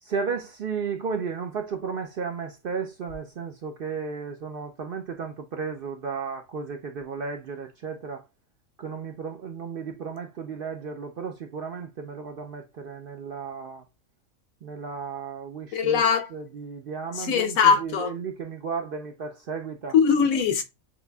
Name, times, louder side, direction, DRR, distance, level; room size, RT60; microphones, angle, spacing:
voice 1, 0.0-8.3 8.8-13.8 14.6-16.0 16.3-20.0, right 5 dB, 60° right, 0.6 m, -34 dB
voice 2, 15.7-16.3 17.2-18.1 19.9-20.6, left 6 dB, 85° left, 1.1 m, -21 dB
7.1 x 2.5 x 2.2 m
omnidirectional pair, 1.4 m